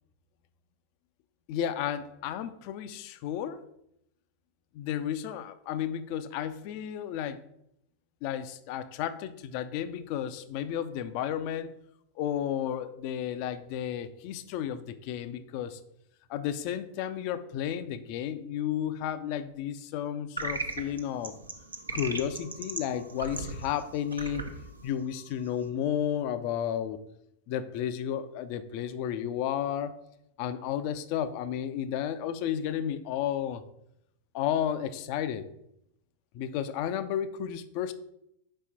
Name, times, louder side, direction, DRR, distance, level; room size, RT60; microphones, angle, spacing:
voice 1, 1.5-3.6 4.7-7.4 8.2-11.7 12.2-15.8 16.3-21.3 21.9-24.5 24.8-27.0 27.5-29.9 30.4-33.6 34.3-35.5 36.3-37.9, left 9 dB, 45° left, 12 dB, 0.5 m, -32 dB
sound 1, 20.4-25.7, right 3 dB, 80° right, 0.8 m, -38 dB
5.3 x 4.4 x 4.2 m, 0.78 s
figure-of-eight pair, 90°, 0 cm